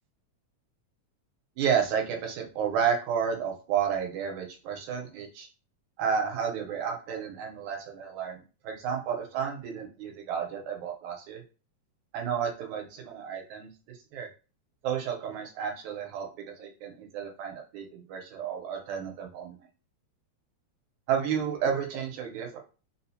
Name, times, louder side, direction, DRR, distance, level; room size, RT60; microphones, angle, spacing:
voice 1, 1.6-5.5 6.0-11.4 12.1-14.3 14.8-19.6 21.1-22.6, right 7 dB, 85° right, 2 dB, 2.1 m, -31 dB
4.9 x 2.0 x 2.7 m, 0.34 s
omnidirectional pair, 3.4 m